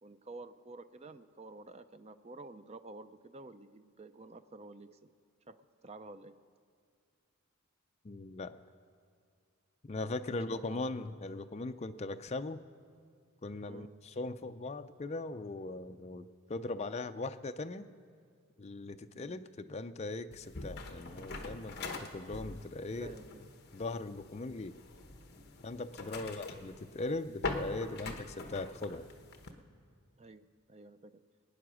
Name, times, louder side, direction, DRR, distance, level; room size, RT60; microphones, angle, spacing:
voice 1, 0.0-5.1 5.5-6.4 10.1-10.9 13.7-14.0 19.1-19.5 23.0-23.5 26.2-26.4 30.2-31.2, right 2 dB, 30° right, 11 dB, 0.4 m, -51 dB
voice 2, 8.0-8.6 9.8-12.6 13.4-17.9 18.6-23.1 23.7-24.8 25.6-29.1, left 2 dB, 30° left, 8 dB, 0.4 m, -39 dB
sound 1, 20.3-29.5, left 3 dB, 45° left, 1.1 m, -44 dB
21.5 x 9.3 x 6.2 m, 2.1 s
head